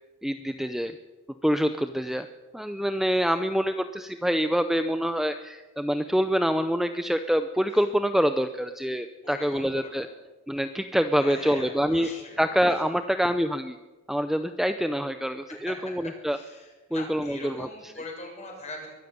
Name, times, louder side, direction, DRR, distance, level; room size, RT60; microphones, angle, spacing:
voice 1, 0.2-0.9 1.4-2.3 2.5-10.1 10.5-12.1 12.4-13.8 14.1-16.4 16.9-17.7, equal, ahead, 8 dB, 0.6 m, -26 dB
voice 2, 9.2-10.1 11.2-12.8 16.3-19.0, left 2 dB, 35° left, 1 dB, 6.9 m, -42 dB
22.5 x 13.0 x 9.5 m, 1.2 s
head